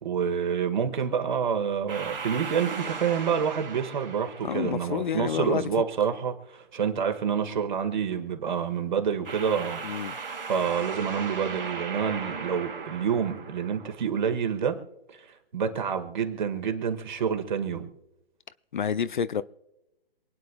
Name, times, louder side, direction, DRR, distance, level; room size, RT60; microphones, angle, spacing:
voice 1, 0.0-9.8 10.5-14.8 15.1-15.3 15.5-17.9, right 7 dB, 50° right, 1.7 m, -28 dB
sound 1, 1.9-5.2 9.2-14.1, right 5 dB, 70° right, 2.2 m, -37 dB
voice 2, 4.4-5.7 9.8-10.2 18.7-19.4, left 7 dB, 55° left, 0.5 m, -29 dB
27.5 x 9.3 x 2.3 m
figure-of-eight pair, 130°, 29 cm